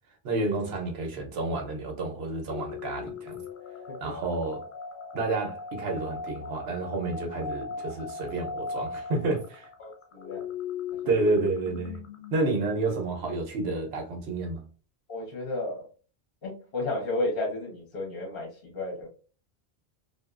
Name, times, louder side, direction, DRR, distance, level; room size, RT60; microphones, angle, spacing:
voice 1, 0.2-3.4 4.0-4.6 5.1-9.7 11.1-12.0 12.3-14.6, right 3 dB, 80° right, 1.0 m, -30 dB
sound 1, 2.5-12.3, left 5 dB, 90° left, 0.8 m, -38 dB
voice 2, 9.8-10.4 10.9-11.1 15.1-15.9 16.4-19.1, left 2 dB, 65° left, 1.2 m, -33 dB
2.7 x 2.3 x 2.3 m
omnidirectional pair, 1.1 m